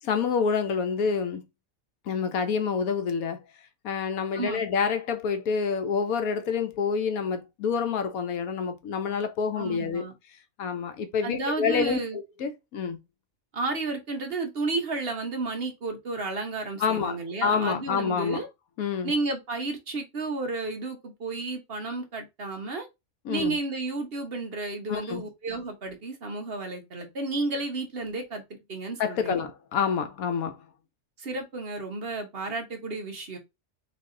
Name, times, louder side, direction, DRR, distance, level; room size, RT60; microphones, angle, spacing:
voice 1, 0.1-1.4 2.1-3.4 3.8-10.1 10.6-12.0 12.4-13.0 16.8-18.4 18.8-19.1 23.3-23.6 24.9-25.2 29.0-30.6, left 6 dB, 85° left, 1.2 m, -27 dB
voice 2, 9.6-10.1 11.2-12.2 13.5-18.5 19.0-22.9 23.3-28.4 28.7-29.4 31.2-33.4, right 3 dB, 50° right, 1.1 m, -32 dB
3.9 x 3.3 x 3.7 m
omnidirectional pair, 1.5 m